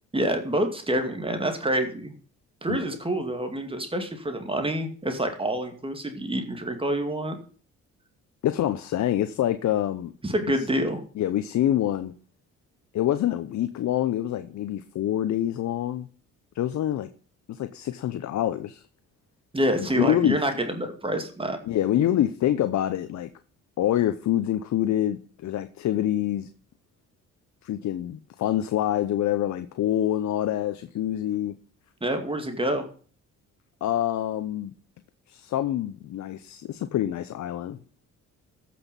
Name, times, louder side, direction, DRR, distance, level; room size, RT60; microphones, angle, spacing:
voice 1, 0.1-2.1 2.6-7.4 10.2-11.0 19.5-21.6 32.0-32.8, right 1 dB, 20° right, 2.3 m, -27 dB
voice 2, 8.4-10.1 11.2-12.1 12.9-16.1 16.5-17.1 17.5-18.8 19.8-20.4 21.7-23.3 23.8-26.5 27.6-31.5 33.8-34.7 35.3-37.8, left 12 dB, 65° left, 0.8 m, -26 dB
14.5 x 6.2 x 5.3 m
cardioid pair, 90°, 30 cm